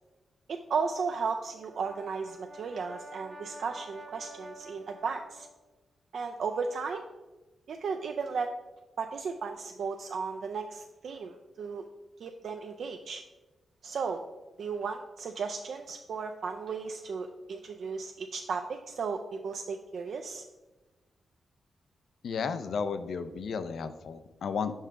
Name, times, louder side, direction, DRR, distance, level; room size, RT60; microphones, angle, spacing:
voice 1, 0.5-5.5 6.1-7.0 7.7-8.5 9.0-11.8 12.2-13.2 13.8-14.2 14.6-20.4, right 5 dB, 60° right, 4 dB, 0.3 m, -35 dB
Brass instrument, 1.4-5.6, right 1 dB, 25° right, 0.6 m, -48 dB
voice 2, 22.2-24.7, left 5 dB, 65° left, 11 dB, 0.4 m, -33 dB
5.7 x 5.5 x 3.6 m, 1.2 s
wide cardioid pair, 145°, 0 cm